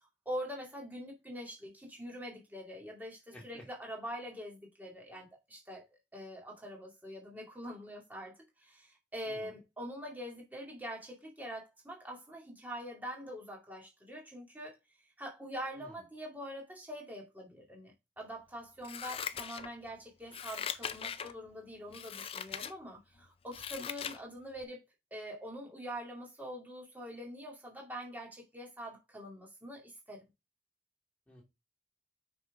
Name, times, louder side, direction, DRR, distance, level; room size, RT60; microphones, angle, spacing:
voice 1, 0.3-5.8 6.1-14.7 15.2-24.8 25.1-30.2, equal, 10° right, 2.3 m, -44 dB
voice 2, 3.3-3.6 9.2-9.5 15.7-16.0 24.0-24.1 31.3-31.4, left 1 dB, 10° left, 2.8 m, -53 dB
Scissors, 18.8-19.9 20.3-21.3 21.9-22.7 23.2-24.2 24.6-24.7, left 7 dB, 35° left, 0.4 m, -40 dB
6.3 x 5.6 x 3.6 m
head